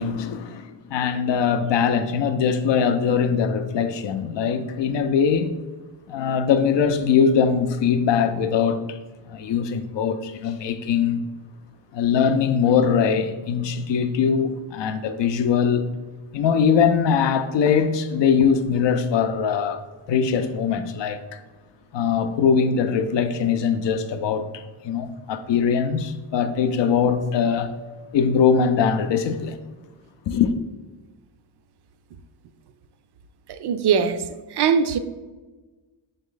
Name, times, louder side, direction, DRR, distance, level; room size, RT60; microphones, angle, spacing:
voice 1, 0.0-5.5 6.1-9.0 9.3-11.2 11.9-15.9 16.3-21.4 21.9-27.7 28.1-29.6 30.3-30.5, left 6 dB, 65° left, 0.5 m, -21 dB
voice 2, 33.6-34.2 34.6-35.0, right 6 dB, 55° right, 0.5 m, -20 dB
3.7 x 3.1 x 3.8 m
supercardioid pair, 40°, 49 cm